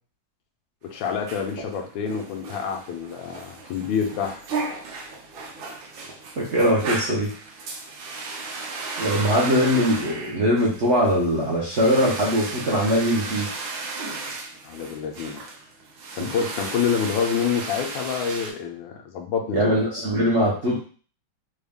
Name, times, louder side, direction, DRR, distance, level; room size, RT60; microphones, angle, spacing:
voice 1, 0.8-4.4 14.6-15.4 16.2-19.8, left 7 dB, 80° left, 4 dB, 1.3 m, -27 dB
sound 1, 0.8-18.5, right 3 dB, 75° right, 1.5 m, -35 dB
voice 2, 6.4-7.3 9.0-13.5 19.5-20.8, equal, 55° right, -5 dB, 0.8 m, -21 dB
3.8 x 2.3 x 3.5 m, 0.41 s
omnidirectional pair, 2.1 m